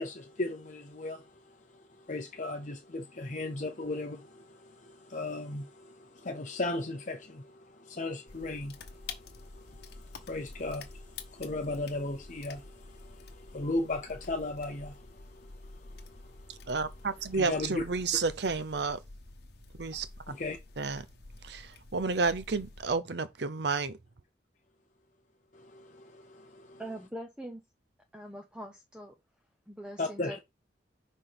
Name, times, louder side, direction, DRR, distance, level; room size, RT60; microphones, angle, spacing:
voice 1, 0.0-16.6 17.3-17.8 20.3-20.6 25.5-26.8 30.0-30.4, left 2 dB, 40° left, 0.7 m, -37 dB
sound 1, 8.3-23.0, left 3 dB, 60° left, 1.0 m, -49 dB
voice 2, 16.5-19.0 19.8-20.1 20.8-21.1 21.4-24.0, right 4 dB, 65° right, 0.6 m, -31 dB
voice 3, 26.8-27.6 28.1-29.1 29.7-30.4, right 1 dB, 5° right, 0.7 m, -42 dB
6.0 x 4.2 x 5.1 m
head